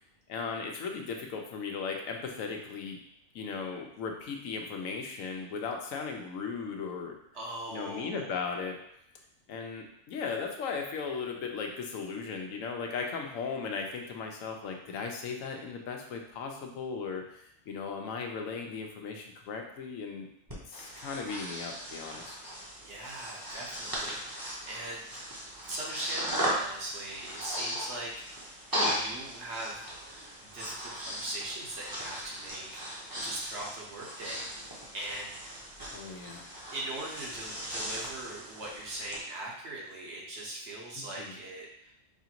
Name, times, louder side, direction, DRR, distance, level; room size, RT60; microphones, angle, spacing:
voice 1, 0.3-3.0 3.3-7.1 7.7-8.8 9.5-22.4 35.9-36.5 41.0-41.3, left 5 dB, 80° left, 2 dB, 1.0 m, -37 dB
voice 2, 7.3-8.2 22.8-25.4 25.7-28.4 28.7-29.8 30.4-34.7 34.9-35.6 36.2-36.4 36.7-41.9, right 1 dB, 60° right, -3 dB, 1.2 m, -40 dB
Breathing, 20.5-39.2, equal, 20° right, 0.7 m, -38 dB
4.8 x 2.5 x 2.9 m, 0.76 s
omnidirectional pair, 1.4 m